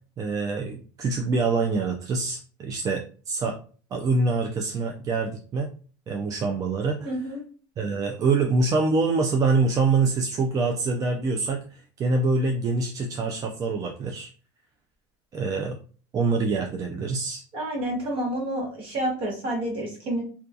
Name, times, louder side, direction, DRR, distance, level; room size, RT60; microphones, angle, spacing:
voice 1, 0.2-3.6 3.9-5.7 6.1-7.1 7.8-14.3 15.3-15.8 16.1-17.4, right 3 dB, 30° right, 2 dB, 0.3 m, -25 dB
voice 2, 7.0-7.4 17.5-20.2, right 1 dB, 50° right, 0 dB, 1.2 m, -29 dB
2.3 x 2.2 x 2.6 m, 0.40 s
supercardioid pair, 120°, 12 cm